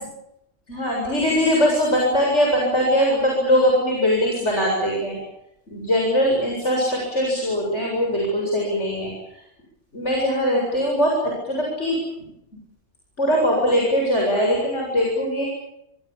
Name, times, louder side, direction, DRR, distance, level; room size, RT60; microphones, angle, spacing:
voice 1, 0.7-5.2 5.7-9.1 9.9-11.1 11.4-12.3 13.2-15.4, equal, 65° left, -2 dB, 8.1 m, -21 dB
28.5 x 25.5 x 7.5 m, 0.82 s
omnidirectional pair, 1.3 m